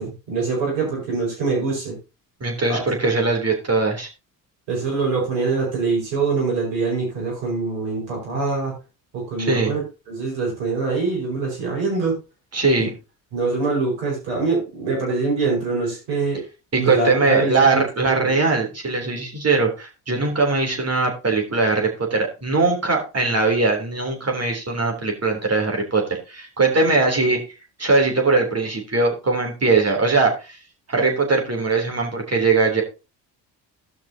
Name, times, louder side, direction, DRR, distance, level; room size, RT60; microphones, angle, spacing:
voice 1, 0.0-2.0 2.7-2.8 4.7-8.7 9.1-12.2 12.8-12.9 13.3-16.4 16.8-17.8 18.2-18.3, right 4 dB, 80° right, -1 dB, 5.4 m, -24 dB
voice 2, 2.4-4.1 9.4-9.7 12.5-12.9 16.7-27.4 27.8-30.6 30.9-32.8, right 3 dB, 30° right, 1 dB, 3.5 m, -20 dB
16.0 x 5.9 x 2.8 m, 0.29 s
hypercardioid pair, 55°, 49 cm